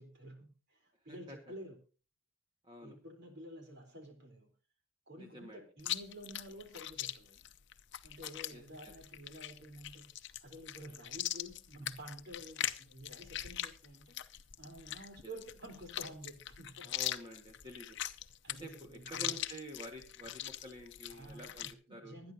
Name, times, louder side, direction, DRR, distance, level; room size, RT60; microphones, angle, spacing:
voice 1, 0.0-1.8 2.8-4.5 5.1-7.4 8.0-14.2 14.6-16.9 18.4-19.4 21.1-22.3, right 1 dB, 55° right, 3 dB, 3.8 m, -51 dB
voice 2, 2.6-3.0 5.2-5.6 8.5-8.9 15.2-15.3 16.8-18.0 18.5-22.2, right 1 dB, 25° right, 2 dB, 1.6 m, -49 dB
Chewing mastication, 5.8-21.7, left 12 dB, 60° left, 0.7 m, -42 dB
24.0 x 9.6 x 2.8 m, 0.36 s
head